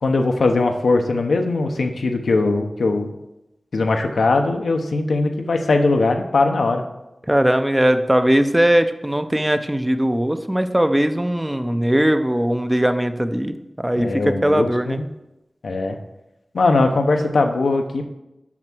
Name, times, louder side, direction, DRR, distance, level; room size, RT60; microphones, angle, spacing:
voice 1, 0.0-3.1 3.7-6.8 14.0-15.1 15.6-16.0 16.5-18.0, left 3 dB, 90° left, 4 dB, 0.8 m, -20 dB
voice 2, 7.3-15.0, right 1 dB, 15° right, 8 dB, 0.6 m, -19 dB
6.0 x 5.9 x 6.0 m, 0.94 s
cardioid pair, 45°, 0 cm